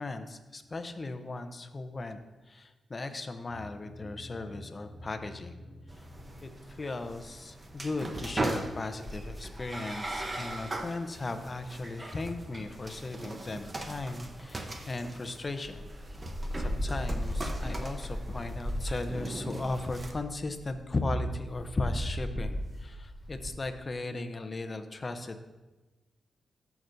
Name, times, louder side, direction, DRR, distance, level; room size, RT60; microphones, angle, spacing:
voice 1, 0.0-2.2 2.5-5.6 5.9-6.0 6.4-15.9 16.6-25.5, left 2 dB, 35° left, 8 dB, 0.7 m, -36 dB
sound 1, 3.5-8.3, left 1 dB, 65° left, 0.9 m, -50 dB
sound 2, 5.9-20.1, right 2 dB, 30° right, 0.9 m, -40 dB
sound 3, 9.1-15.0 15.5-23.5, equal, 15° right, 2.5 m, -38 dB
14.0 x 5.9 x 2.7 m, 1.2 s
cardioid pair, 80°, 0 cm